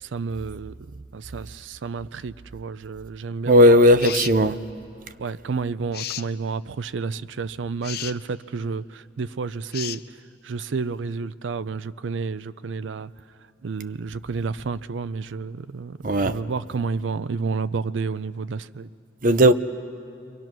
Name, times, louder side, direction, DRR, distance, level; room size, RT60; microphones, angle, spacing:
voice 1, 0.0-3.8 4.1-4.5 5.2-10.0 10.4-13.1 13.6-18.9, right 4 dB, 85° right, 0.5 m, -30 dB
voice 2, 3.5-4.6 16.0-16.4 19.2-19.5, equal, 45° right, 0.6 m, -16 dB
sound 1, 4.0-4.4 5.9-6.3 7.8-8.2 9.7-10.0, left 12 dB, 55° left, 0.5 m, -33 dB
29.0 x 22.5 x 6.1 m
head